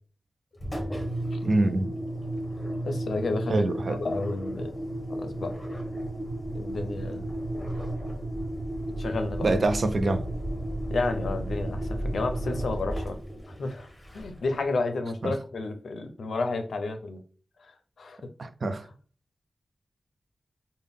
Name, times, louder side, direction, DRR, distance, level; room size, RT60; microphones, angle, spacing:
Engine, 0.6-14.5, right 1 dB, 15° left, 0.9 m, -33 dB
voice 1, 1.4-1.9 3.5-4.0 9.4-10.2 15.2-15.3 18.4-18.9, right 2 dB, 60° right, 0.4 m, -25 dB
voice 2, 2.8-4.7 5.1-5.5 6.5-7.3 9.0-9.5 10.9-13.2 13.5-17.2 17.6-17.7 18.0-18.2, left 3 dB, 85° left, 0.5 m, -31 dB
3.5 x 2.1 x 3.5 m
wide cardioid pair, 75°, 0 cm